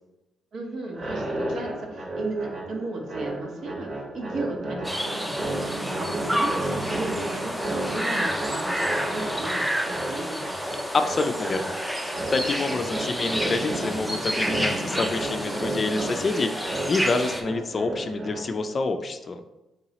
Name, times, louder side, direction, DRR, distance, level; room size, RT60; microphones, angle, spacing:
voice 1, 0.5-10.4, right 2 dB, 65° right, 1 dB, 0.9 m, -35 dB
sound 1, 0.9-18.8, right 1 dB, 40° right, 1.0 m, -33 dB
sound 2, 4.8-17.4, equal, 5° right, 0.6 m, -30 dB
voice 2, 10.9-11.7 12.3-19.4, left 3 dB, 40° left, 8 dB, 0.4 m, -27 dB
4.6 x 2.9 x 2.9 m, 0.98 s
cardioid pair, 90°, 0 cm